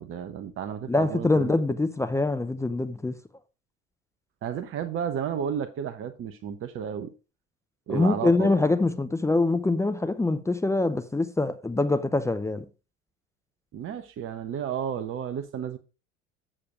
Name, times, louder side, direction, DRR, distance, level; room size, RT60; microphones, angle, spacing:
voice 1, 0.0-1.5 4.4-7.1 7.9-8.6 13.7-15.8, right 8 dB, 35° right, 0.9 m, -32 dB
voice 2, 0.9-3.2 7.9-12.7, left 2 dB, 5° left, 0.6 m, -24 dB
8.7 x 6.8 x 4.9 m
figure-of-eight pair, 75°, 39 cm